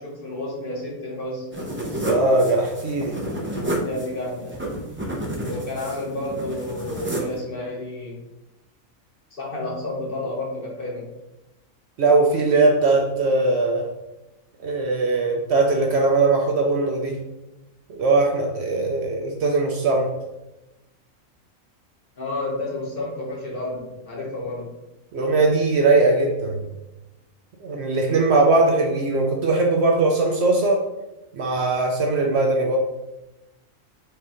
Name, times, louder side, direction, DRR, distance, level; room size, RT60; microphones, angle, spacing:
voice 1, 0.0-1.5 3.5-4.6 5.5-8.2 9.3-11.1 22.2-24.7, left 2 dB, 45° left, -2 dB, 1.1 m, -31 dB
sound 1, 1.5-7.4, right 1 dB, 15° right, 0.4 m, -30 dB
voice 2, 2.1-3.2 12.0-13.9 14.6-17.2 17.9-20.1 25.1-26.6 27.6-30.9 31.3-32.8, right 3 dB, 60° right, 1 dB, 0.8 m, -20 dB
4.8 x 3.6 x 2.9 m, 0.99 s
omnidirectional pair, 1.4 m